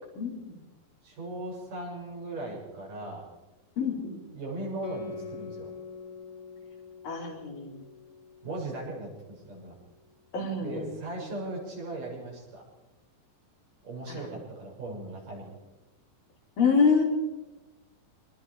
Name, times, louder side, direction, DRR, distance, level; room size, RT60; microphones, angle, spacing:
voice 1, 0.2-0.6 3.8-4.2 7.0-7.8 10.3-10.9 11.2-11.3 14.1-14.3 16.6-17.0, left 5 dB, 65° left, -1 dB, 5.8 m, -27 dB
voice 2, 1.0-3.2 4.3-5.7 8.4-9.7 10.6-12.6 13.8-15.6, right 2 dB, 60° right, -3 dB, 8.4 m, -38 dB
Guitar, 4.8-9.8, left 5 dB, 25° left, 4.2 m, -45 dB
26.0 x 21.0 x 5.0 m, 1.1 s
omnidirectional pair, 4.2 m